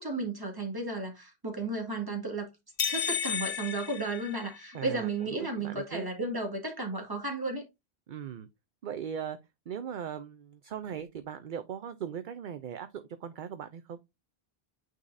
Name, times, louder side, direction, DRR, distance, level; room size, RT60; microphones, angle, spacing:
voice 1, 0.0-2.5 2.9-7.6, right 2 dB, 20° right, 1.8 m, -34 dB
sound 1, 2.8-4.9, left 8 dB, 55° left, 0.9 m, -33 dB
voice 2, 4.7-6.1 8.1-8.5 8.8-9.4 9.7-14.0, right 8 dB, 55° right, 0.7 m, -39 dB
9.1 x 4.0 x 2.6 m
omnidirectional pair, 1.1 m